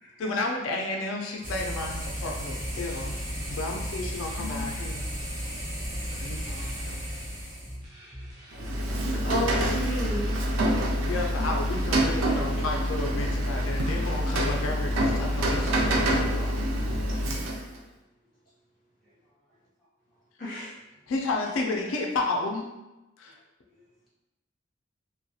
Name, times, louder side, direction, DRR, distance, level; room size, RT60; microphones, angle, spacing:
voice 1, 0.2-3.2 3.5-5.1 6.2-7.1 11.0-16.6 21.1-22.7 23.2-23.4, left 2 dB, 90° left, 1 dB, 0.4 m, -32 dB
sound 1, 1.4-7.7, equal, 40° right, 0.8 m, -34 dB
sound 2, 2.5-17.3, equal, 20° right, 0.4 m, -46 dB
voice 2, 4.4-4.7 9.1-10.4 11.3-11.5 20.4-20.7, equal, 45° left, -6 dB, 0.7 m, -32 dB
voice 3, 8.0-8.9 19.0-19.6 20.1-20.2 23.2-24.1, left 2 dB, ahead, -11 dB, 0.8 m, -67 dB
Rain, 8.5-17.8, equal, 90° right, 0.4 m, -26 dB
2.3 x 2.0 x 2.7 m, 0.98 s
head